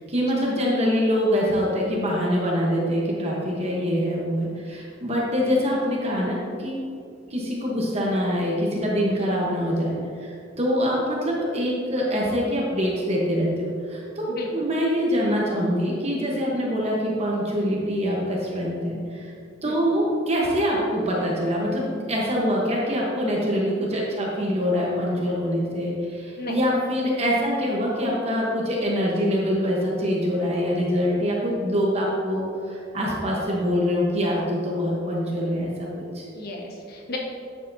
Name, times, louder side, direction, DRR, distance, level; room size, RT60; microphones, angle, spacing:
voice 1, 0.0-6.8 7.3-14.3 14.5-19.3 19.6-36.3, equal, 35° right, -3 dB, 1.1 m, -24 dB
voice 2, 14.3-14.7 19.6-19.8 26.4-26.6 36.3-37.2, left 1 dB, 55° left, 0 dB, 1.2 m, -34 dB
9.7 x 6.6 x 2.7 m, 2.4 s
head